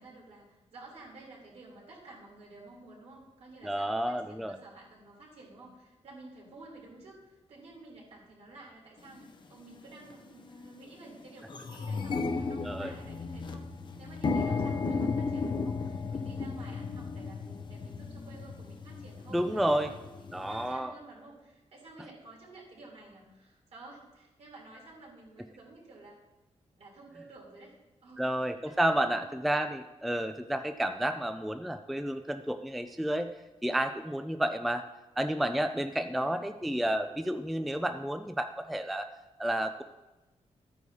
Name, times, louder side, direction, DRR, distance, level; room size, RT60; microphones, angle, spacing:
voice 1, 0.0-26.2 26.8-27.8 28.0-28.3 28.6-29.3, right 2 dB, 60° right, -3 dB, 3.4 m, -52 dB
voice 2, 3.6-4.6 12.6-12.9 19.3-19.9 20.3-20.9 28.2-33.3 33.6-34.8 35.2-39.1 39.4-39.8, right 1 dB, ahead, 8 dB, 0.3 m, -31 dB
sound 1, 9.1-9.2 10.0-10.2 10.6-10.7 11.0-20.7, left 4 dB, 40° left, 0.6 m, -34 dB
13.5 x 9.3 x 2.8 m, 1.1 s
wide cardioid pair, 155°, 12 cm